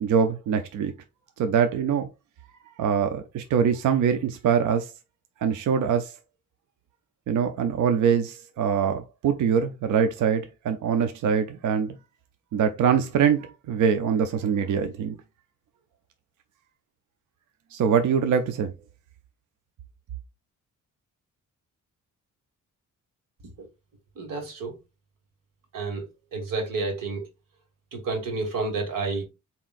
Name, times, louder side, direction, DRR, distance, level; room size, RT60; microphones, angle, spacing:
voice 1, 0.0-0.9 1.4-2.1 2.8-4.9 5.4-6.1 7.3-11.9 12.5-15.2 17.7-18.7, right 7 dB, 65° right, 0.6 m, -23 dB
voice 2, 24.2-24.7 25.7-26.1 26.3-27.2 27.9-29.2, right 3 dB, 85° right, 1.7 m, -30 dB
7.2 x 2.9 x 2.4 m
wide cardioid pair, 175°, 32 cm